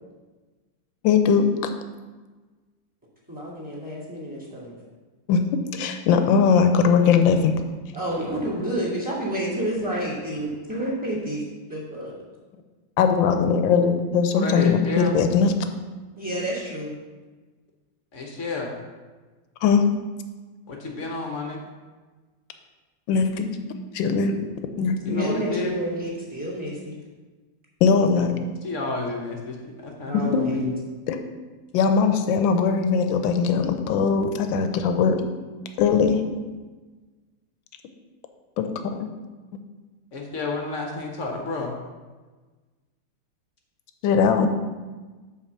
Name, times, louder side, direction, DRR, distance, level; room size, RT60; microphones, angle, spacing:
voice 1, 1.0-1.5 5.3-5.4 5.7-7.5 13.0-15.5 19.6-19.9 23.1-23.6 23.9-24.5 24.8-25.3 27.8-28.4 30.1-30.5 31.1-31.2 31.7-35.2 35.8-36.2 38.6-39.1 44.0-44.5, left 6 dB, 75° left, 7 dB, 1.3 m, -20 dB
voice 2, 3.3-4.7 7.9-11.4 11.7-12.1 16.2-16.9 25.1-26.9 30.0-30.7, right 1 dB, 5° right, -5 dB, 1.8 m, -29 dB
voice 3, 14.3-15.2 18.1-18.8 20.7-21.6 25.0-25.7 28.1-28.2 28.6-29.6 29.8-30.7 40.1-41.7, left 3 dB, 50° left, 1 dB, 0.9 m, -30 dB
5.8 x 4.8 x 6.6 m, 1.3 s
omnidirectional pair, 2.2 m